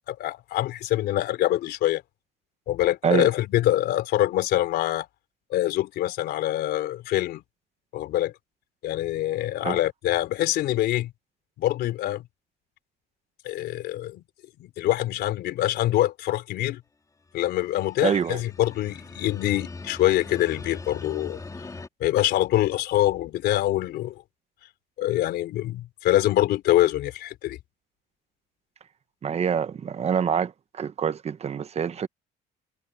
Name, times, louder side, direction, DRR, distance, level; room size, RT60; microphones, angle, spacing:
voice 1, 0.1-2.0 2.7-5.1 5.5-7.4 7.9-8.3 8.8-11.1 11.6-12.2 13.4-14.2 14.6-16.8 17.3-21.4 22.0-24.1 25.0-27.6, left 14 dB, 75° left, 3.7 m, -25 dB
sound 1, 17.3-21.9, left 3 dB, 20° left, 4.1 m, -41 dB
voice 2, 18.0-18.4 29.2-32.1, right 7 dB, 40° right, 1.1 m, -26 dB
cardioid pair, 110°, 17 cm